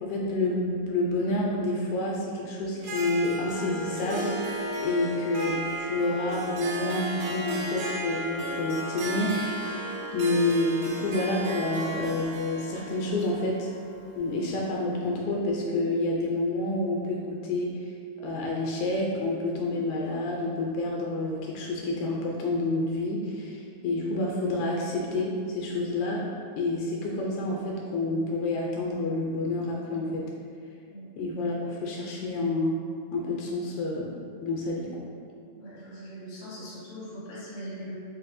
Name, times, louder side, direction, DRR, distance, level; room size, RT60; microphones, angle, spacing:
voice 1, 0.0-4.3 4.8-13.7 14.2-17.8 18.2-26.2 26.6-30.3 31.2-32.8 33.1-34.1 34.4-34.9, left 2 dB, 80° left, -2 dB, 1.8 m, -28 dB
Harp, 2.8-14.6, right 1 dB, 90° right, 1.4 m, -34 dB
voice 2, 35.5-37.9, equal, 55° left, -9 dB, 0.8 m, -41 dB
4.6 x 3.2 x 2.5 m, 2.3 s
omnidirectional pair, 3.5 m